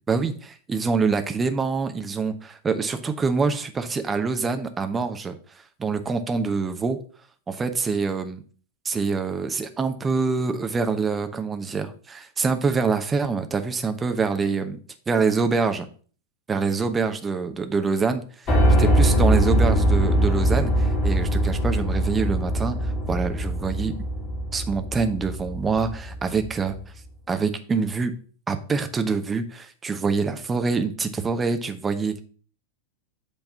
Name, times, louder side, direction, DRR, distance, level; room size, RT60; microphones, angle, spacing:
voice 1, 0.1-5.4 5.8-7.0 7.5-8.4 8.8-14.8 15.1-15.9 16.5-24.0 24.5-26.7 27.3-28.1 28.5-32.2, right 4 dB, 15° right, 8 dB, 0.9 m, -25 dB
Piano, 18.5-26.5, right 1 dB, 30° left, 2.3 m, -22 dB
8.1 x 3.4 x 5.7 m, 0.42 s
figure-of-eight pair, 90°, 0 cm